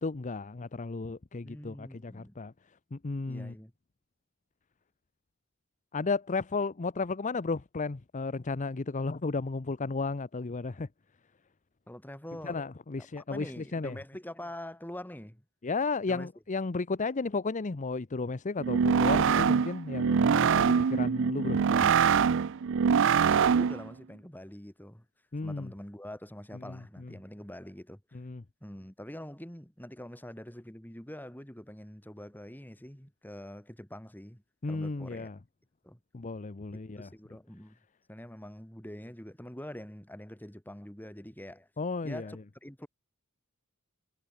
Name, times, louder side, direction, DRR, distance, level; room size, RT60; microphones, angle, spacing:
voice 1, 0.0-2.5 2.9-3.5 5.9-10.9 12.4-14.0 15.6-21.9 25.3-25.7 26.6-26.8 28.1-28.4 34.6-35.4 36.1-37.1 41.8-42.3, left 3 dB, 35° left, 0.7 m, -34 dB
voice 2, 1.3-2.4 3.2-3.7 11.9-12.6 13.2-15.4 16.1-16.3 23.3-25.0 25.4-28.2 28.6-35.3 35.8-36.0 37.0-37.8 38.1-41.7 42.0-42.9, left 1 dB, 10° left, 3.4 m, -45 dB
sound 1, 18.6-23.9, right 6 dB, 65° right, 0.5 m, -24 dB
head